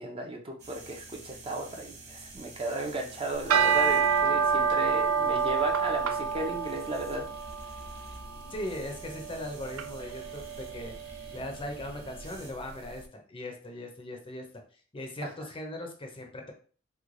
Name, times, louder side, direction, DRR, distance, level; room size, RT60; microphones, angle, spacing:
voice 1, 0.0-7.3 8.4-8.5 15.2-15.3, right 2 dB, 25° right, 1 dB, 0.6 m, -35 dB
sound 1, 0.6-12.5, right 2 dB, 55° right, 1.0 m, -49 dB
sound 2, 3.3-12.7, right 6 dB, 80° right, 0.3 m, -29 dB
voice 2, 8.5-14.5 14.9-16.5, left 1 dB, 25° left, 3 dB, 0.6 m, -39 dB
3.1 x 2.2 x 3.7 m, 0.41 s
head